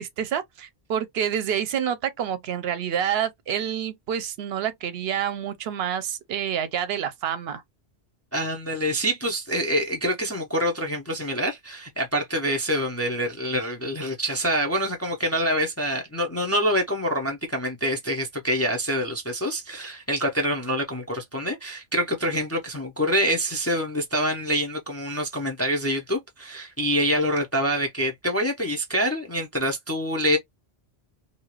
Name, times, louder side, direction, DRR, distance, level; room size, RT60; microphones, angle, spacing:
voice 1, 0.0-7.6, right 9 dB, 70° right, 0.8 m, -28 dB
voice 2, 8.3-30.4, equal, 20° left, 0.4 m, -26 dB
2.7 x 2.4 x 2.9 m
omnidirectional pair, 1.1 m